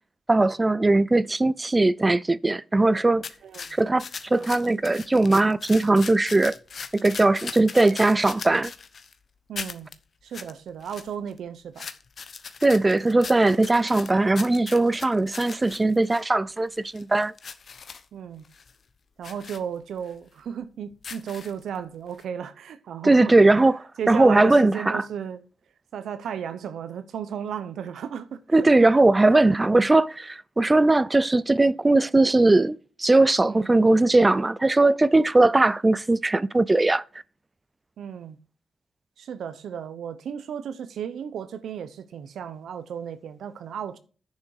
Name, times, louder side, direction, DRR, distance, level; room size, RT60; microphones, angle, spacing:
voice 1, 0.3-3.2 3.7-6.5 6.9-8.7 12.6-17.3 23.0-23.8 24.1-25.0 28.5-37.0, right 2 dB, 15° right, 0.4 m, -19 dB
sound 1, 3.2-9.1 9.6-10.0 10.3-10.5 10.8-11.4 11.8-16.3 16.7-18.0 18.4-18.7 19.2-19.6 20.1-20.2 20.9-21.8 22.2-22.3, left 5 dB, 40° left, 0.9 m, -39 dB
voice 2, 3.4-3.8 9.5-9.9 10.2-11.9 18.1-18.4 19.2-23.4 24.0-25.4 25.9-28.9 29.3-29.4 33.4-33.8 38.0-38.4 39.2-44.0, right 8 dB, 75° right, 0.8 m, -34 dB
10.5 x 6.4 x 4.8 m
wide cardioid pair, 165°, 0 cm